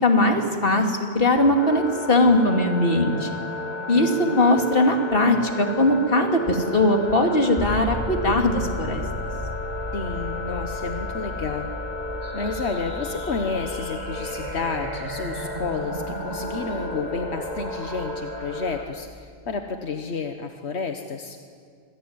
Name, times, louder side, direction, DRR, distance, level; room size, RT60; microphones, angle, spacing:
voice 1, 0.0-3.3 3.9-9.0, left 1 dB, 60° left, 3 dB, 2.9 m, -20 dB
sound 1, 1.5-18.8, left 1 dB, 40° left, 3.2 m, -33 dB
voice 2, 3.7-4.4 9.9-11.7 12.3-21.4, left 4 dB, 90° left, 5 dB, 1.6 m, -31 dB
sound 2, 7.6-19.5, left 1 dB, 5° left, 3.1 m, -36 dB
sound 3, 12.2-18.2, right 3 dB, 45° right, 1.6 m, -38 dB
26.0 x 21.0 x 9.5 m, 2.2 s
omnidirectional pair, 1.1 m